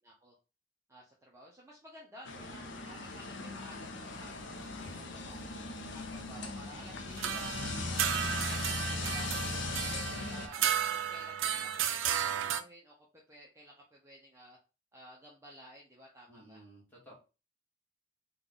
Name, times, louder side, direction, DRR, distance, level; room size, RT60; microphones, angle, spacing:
voice 1, 0.0-0.3 0.9-5.4 5.9-7.6 7.9-9.8 10.3-13.0 13.3-14.6 14.9-16.6, equal, 15° right, -3 dB, 0.7 m, -54 dB
sound 1, 2.2-10.5, left 3 dB, 65° left, 0.6 m, -39 dB
sound 2, 7.2-12.6, right 9 dB, 70° right, 0.4 m, -33 dB
voice 2, 16.3-17.1, right 1 dB, 10° left, -4 dB, 1.7 m, -55 dB
3.7 x 2.4 x 3.7 m, 0.31 s
head